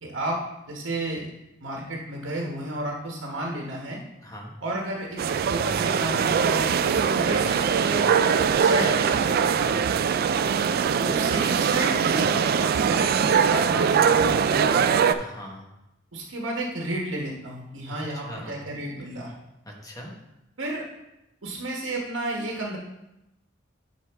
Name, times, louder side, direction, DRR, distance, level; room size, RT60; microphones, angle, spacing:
voice 1, 0.0-0.4 0.7-1.2 1.6-4.0 4.6-8.1 8.6-9.3 10.9-14.9 16.1-19.3 20.6-20.8 21.4-22.8, right 1 dB, 70° right, -1 dB, 1.2 m, -31 dB
voice 2, 4.2-4.5 9.5-9.9 15.2-15.7 17.9-18.7 19.7-20.2, equal, 20° left, 0 dB, 1.3 m, -41 dB
sound 1, 5.2-15.2, right 7 dB, 50° right, 0.3 m, -22 dB
9.7 x 4.8 x 3.5 m, 0.91 s
head